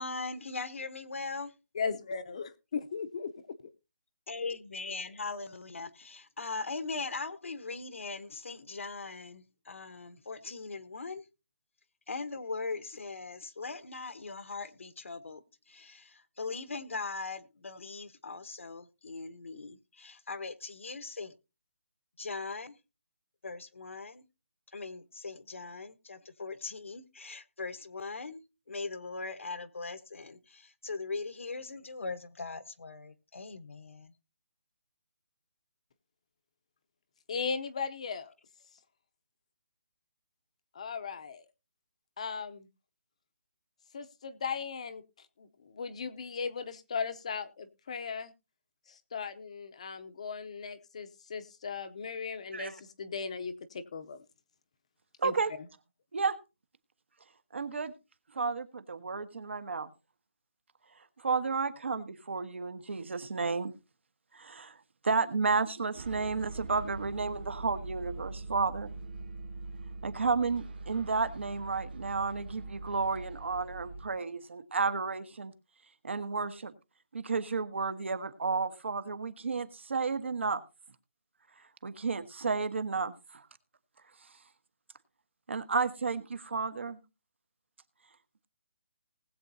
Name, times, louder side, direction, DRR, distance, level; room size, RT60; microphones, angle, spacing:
voice 1, 0.0-1.5 4.3-11.2 12.1-15.4 15.7-21.3 22.2-22.7 23.4-24.2 24.7-28.4 28.7-34.1, left 4 dB, 75° left, 1.2 m, -40 dB
voice 2, 1.7-3.6 37.3-38.3 40.7-41.4 42.2-42.7 43.9-45.0 45.4-48.3 48.9-54.2 55.2-55.7, left 5 dB, 30° left, 0.7 m, -37 dB
voice 3, 55.2-55.5 56.1-56.4 57.5-57.9 58.3-59.9 61.2-63.7 64.3-64.7 65.0-68.9 70.0-75.5 76.0-76.7 77.1-80.6 81.8-83.4 85.5-87.0, right 4 dB, 65° right, 1.3 m, -32 dB
sound 1, 65.9-74.1, right 3 dB, 45° right, 1.4 m, -43 dB
19.5 x 8.0 x 2.7 m
hypercardioid pair, 175°, 7 cm